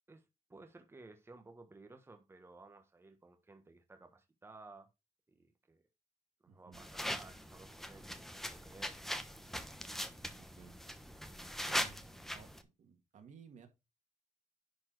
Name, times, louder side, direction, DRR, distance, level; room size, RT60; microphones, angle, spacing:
voice 1, 0.1-4.9 5.3-5.8 6.4-9.0, right 3 dB, 20° right, 1.3 m, -57 dB
voice 2, 6.5-6.8 10.4-10.8 11.3-13.7, right 6 dB, 80° right, 2.2 m, -58 dB
sound 1, 6.7-12.6, equal, 5° left, 1.1 m, -41 dB
10.5 x 4.4 x 4.7 m
wide cardioid pair, 135°, 13 cm